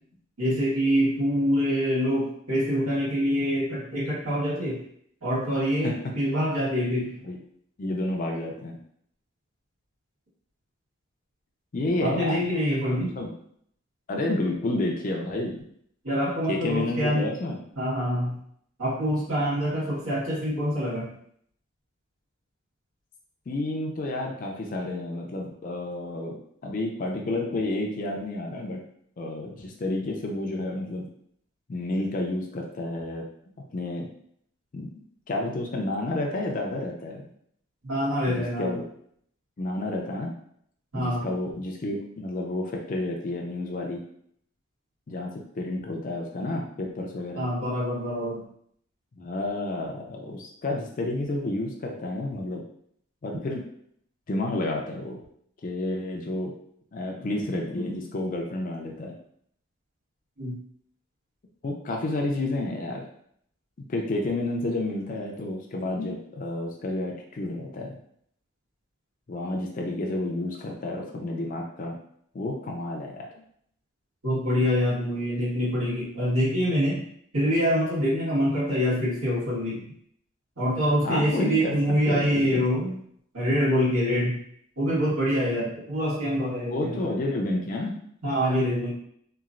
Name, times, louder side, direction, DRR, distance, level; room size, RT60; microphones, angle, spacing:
voice 1, 0.4-4.8 5.2-7.1 12.0-13.1 16.0-17.3 17.7-18.4 18.8-21.1 37.8-38.8 40.9-41.3 47.3-48.4 60.4-60.5 74.2-77.0 77.3-79.9 80.6-82.9 83.3-84.4 84.8-87.1 88.2-88.9, equal, 80° right, -9 dB, 1.4 m, -25 dB
voice 2, 7.8-8.8 11.7-12.5 13.1-13.3 14.1-15.6 16.5-17.6 23.5-26.4 26.6-28.8 29.2-31.1 31.7-33.2 33.7-34.1 34.7-34.9 35.3-37.3 38.3-38.8 39.6-40.3 40.9-44.0 45.1-45.3 45.6-47.4 49.2-52.6 53.2-53.6 54.3-55.2 55.6-56.5 56.9-59.1 61.6-63.1 63.9-68.0 69.3-72.0 72.3-73.3 81.0-81.8 82.1-82.6 86.7-88.0, left 2 dB, 40° left, 0 dB, 0.4 m, -30 dB
3.0 x 2.4 x 2.4 m, 0.67 s
head